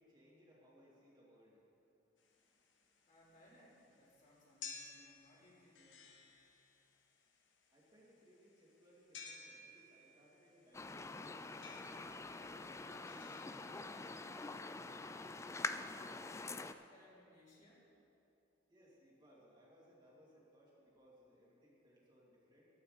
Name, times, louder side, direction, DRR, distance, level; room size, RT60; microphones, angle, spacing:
voice 1, 0.0-2.6 2.9-3.0 7.7-14.6 18.7-22.7, equal, 25° right, -6 dB, 2.5 m, -66 dB
sound 1, 2.2-14.2, left 5 dB, 75° left, 1.2 m, -56 dB
voice 2, 3.1-6.1 15.8-17.9, left 1 dB, 40° left, -6 dB, 3.3 m, -64 dB
sound 2, 10.7-16.7, left 3 dB, 15° left, 0.3 m, -45 dB
14.0 x 12.5 x 4.1 m, 2.7 s
head